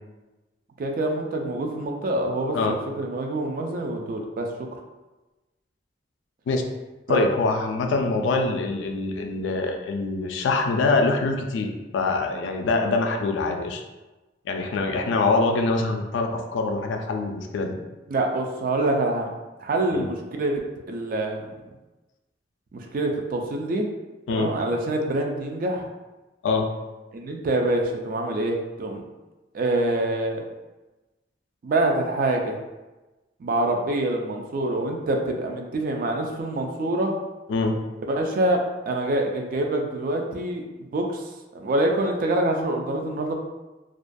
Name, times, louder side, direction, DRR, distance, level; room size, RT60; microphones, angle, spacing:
voice 1, 0.8-4.7 7.1-7.3 18.1-19.3 19.6-21.4 22.7-23.9 24.3-25.9 27.1-29.0 29.5-30.5 31.6-32.6 33.4-37.2 38.1-40.6 40.9-43.4, right 2 dB, 50° right, 2 dB, 0.3 m, -26 dB
voice 2, 7.1-13.8 14.5-17.8 19.9-20.0 24.3-24.5 26.4-26.7 37.5-37.7, left 3 dB, 80° left, 4 dB, 0.3 m, -24 dB
2.3 x 2.2 x 2.5 m, 1.1 s
head